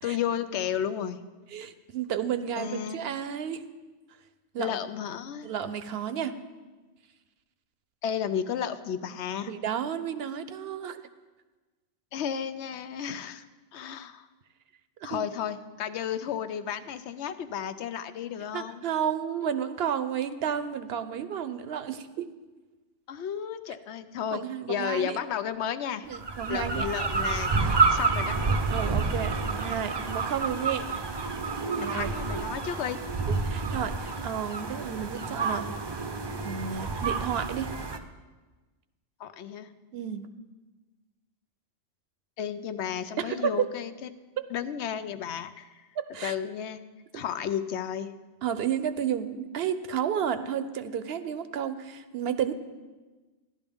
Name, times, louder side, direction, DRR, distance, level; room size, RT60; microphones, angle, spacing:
voice 1, 0.0-1.2 2.6-3.0 4.6-5.5 8.0-9.5 12.1-13.4 13.7-14.3 15.0-18.8 23.1-24.4 24.7-26.1 26.5-27.5 27.9-28.4 31.9-33.0 39.2-39.7 42.4-44.1 44.5-45.7 46.2-46.8 47.1-48.1, left 8 dB, 80° left, 11 dB, 0.9 m, -33 dB
voice 2, 1.5-3.6 4.5-4.8 5.4-6.4 9.5-11.0 15.0-15.3 18.5-22.3 24.3-25.2 26.1-26.8 28.7-31.0 31.8-32.1 33.3-35.7 36.4-37.7 39.9-40.3 43.2-43.7 44.4-44.5 46.0-46.4 47.1-47.2 48.4-52.5, right 8 dB, 70° right, 11 dB, 0.8 m, -32 dB
sound 1, 26.1-38.0, right 4 dB, 35° right, 0.4 m, -29 dB
15.0 x 11.5 x 3.5 m, 1.3 s
omnidirectional pair, 1.1 m